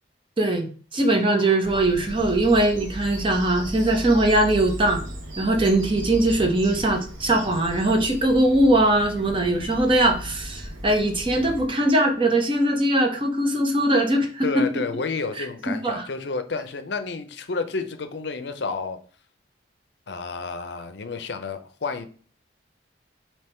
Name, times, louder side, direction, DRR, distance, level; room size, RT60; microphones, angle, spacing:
voice 1, 0.4-5.0 5.4-14.7 15.4-16.0, right 1 dB, 25° right, 0.7 m, -21 dB
voice 2, 1.3-1.7 14.4-19.0 20.1-22.1, left 4 dB, 65° left, 0.5 m, -30 dB
Bird vocalization bird call bird song, 1.6-11.7, equal, 85° right, 1.0 m, -36 dB
3.6 x 2.9 x 4.3 m
head